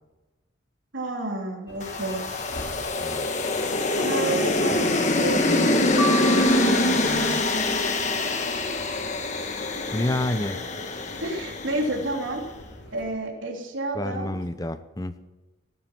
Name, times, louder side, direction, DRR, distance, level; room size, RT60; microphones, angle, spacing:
voice 1, 0.9-2.4 3.9-7.4 11.2-12.4 12.9-14.3, right 2 dB, 80° right, 0 dB, 3.2 m, -31 dB
sound 1, 1.7-13.1, left 1 dB, 60° left, 2.7 m, -45 dB
sound 2, 1.8-12.1, left 2 dB, 35° left, 1.4 m, -24 dB
sound 3, 6.0-7.3, equal, 90° left, 1.8 m, -31 dB
voice 2, 9.9-10.6 13.9-15.2, left 1 dB, 20° left, 11 dB, 0.7 m, -28 dB
18.5 x 9.5 x 6.1 m, 1.1 s
head